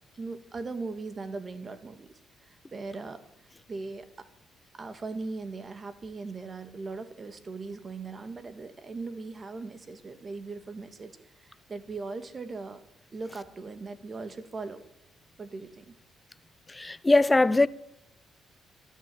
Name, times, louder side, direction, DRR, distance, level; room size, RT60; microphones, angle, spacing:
voice 1, 0.2-2.1 2.4-4.3 4.7-12.8 13.1-14.8 15.4-16.0, right 3 dB, 35° right, 1.8 m, -39 dB
voice 2, 16.7-17.7, left 2 dB, 20° left, 0.6 m, -21 dB
13.0 x 12.5 x 7.9 m
cardioid pair, 90°, 0 cm